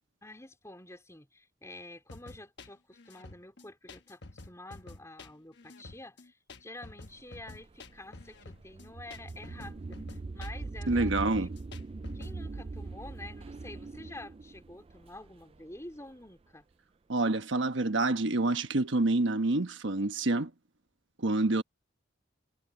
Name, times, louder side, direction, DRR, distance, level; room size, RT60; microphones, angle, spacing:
voice 1, 0.2-11.4 12.1-16.6, left 2 dB, 15° left, 4.1 m, -48 dB
sound 1, 2.1-12.4, left 2 dB, 60° left, 1.2 m, -49 dB
sound 2, 7.1-16.1, right 3 dB, 30° right, 0.4 m, -41 dB
voice 2, 10.9-11.5 17.1-20.5 21.2-21.6, right 2 dB, 65° right, 1.2 m, -27 dB
head